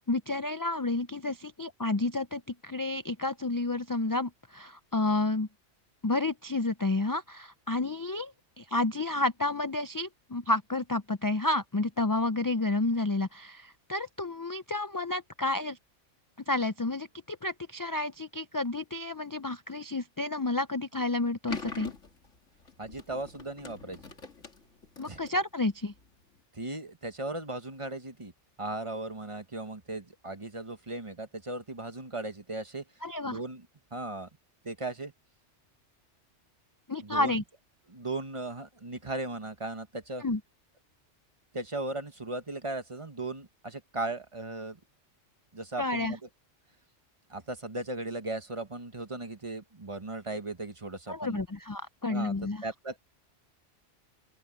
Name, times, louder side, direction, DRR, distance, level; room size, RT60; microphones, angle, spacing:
voice 1, 0.1-5.5 6.0-15.8 16.5-21.9 25.0-25.9 33.0-33.4 36.9-37.4 40.2-40.4 45.8-46.2 51.1-52.6, left 2 dB, 35° left, 0.3 m, -30 dB
sound 1, 21.5-26.4, left 4 dB, 80° left, 2.8 m, -44 dB
voice 2, 22.8-24.0 25.1-25.2 26.5-28.3 28.6-32.8 33.2-33.7 33.9-34.3 34.6-35.1 37.0-37.4 37.9-40.2 41.5-44.8 45.5-46.2 47.3-51.4 52.1-53.0, right 2 dB, 25° right, 1.3 m, -37 dB
open air
omnidirectional pair, 1.2 m